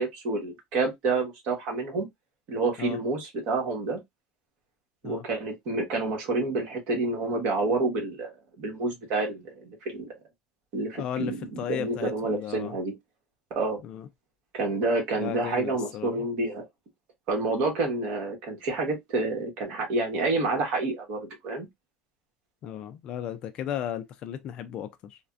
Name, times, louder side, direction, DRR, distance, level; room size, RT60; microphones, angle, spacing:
voice 1, 0.0-2.1 2.5-4.0 5.0-8.3 8.6-10.1 10.7-12.9 13.5-13.8 14.5-16.7 17.3-21.7, right 3 dB, 50° right, 1.2 m, -28 dB
voice 2, 10.9-12.8 13.8-14.1 15.2-16.3 22.6-25.2, left 10 dB, 35° left, 0.3 m, -35 dB
3.3 x 2.1 x 2.4 m
cardioid pair, 175°, 2 cm